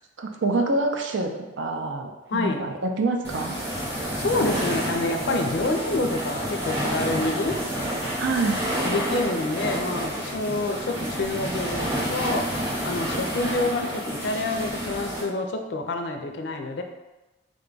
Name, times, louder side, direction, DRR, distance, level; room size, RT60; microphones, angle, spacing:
voice 1, 0.2-3.6 8.2-8.6, right 2 dB, 70° right, 3 dB, 0.5 m, -26 dB
voice 2, 2.3-2.6 4.0-7.5 8.8-12.4 12.8-16.8, left 2 dB, 65° left, 5 dB, 0.4 m, -27 dB
sound 1, 3.2-15.2, equal, 10° right, 0.8 m, -29 dB
3.7 x 2.3 x 3.8 m, 1.1 s
head